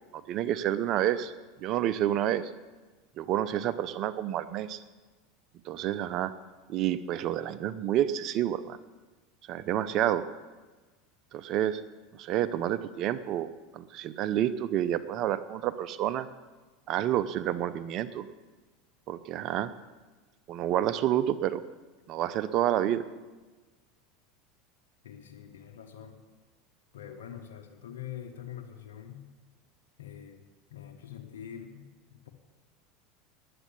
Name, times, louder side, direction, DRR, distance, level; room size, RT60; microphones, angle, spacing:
voice 1, 0.3-1.3 1.6-2.4 3.2-4.8 5.7-6.3 6.7-8.8 9.5-10.2 11.3-11.8 12.1-16.3 16.9-18.3 19.1-19.7 20.5-21.6 22.1-23.0, right 11 dB, 50° right, 13 dB, 0.7 m, -29 dB
voice 2, 25.0-26.2 26.9-29.3 30.0-32.3, left 9 dB, 85° left, 2 dB, 1.2 m, -45 dB
9.9 x 8.3 x 9.2 m, 1.3 s
hypercardioid pair, 90°, 0 cm